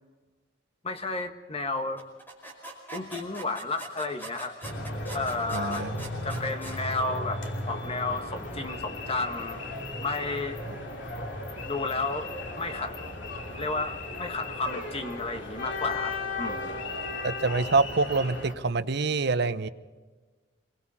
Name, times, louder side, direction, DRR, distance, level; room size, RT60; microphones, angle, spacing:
voice 1, 0.8-2.0 2.9-4.5 5.1-5.9 6.2-7.4 7.7-9.6 10.0-10.6 11.6-12.3 12.6-13.0 13.6-16.8, left 3 dB, 30° left, 6 dB, 1.5 m, -32 dB
sound 1, 2.0-6.8, right 1 dB, 10° left, 5.2 m, -42 dB
sound 2, 4.6-18.5, left 2 dB, 75° left, 2.9 m, -36 dB
voice 2, 5.5-5.9 17.2-19.7, right 3 dB, 65° right, 11 dB, 0.9 m, -26 dB
27.5 x 23.0 x 4.3 m, 1.3 s
head